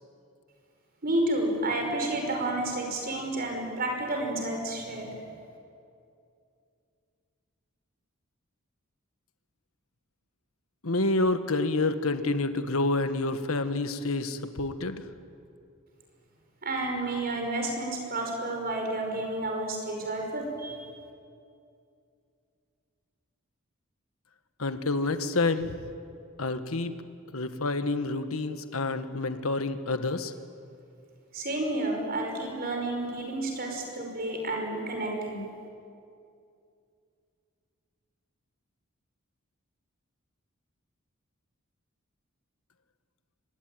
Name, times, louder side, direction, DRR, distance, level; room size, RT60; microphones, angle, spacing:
voice 1, 1.0-5.1 16.6-20.8 31.3-35.4, right 2 dB, 45° right, 2 dB, 5.6 m, -30 dB
voice 2, 10.8-15.0 24.6-25.8 26.4-26.9 27.3-30.3, left 2 dB, 85° left, 9 dB, 1.5 m, -28 dB
24.5 x 21.5 x 9.4 m, 2.5 s
head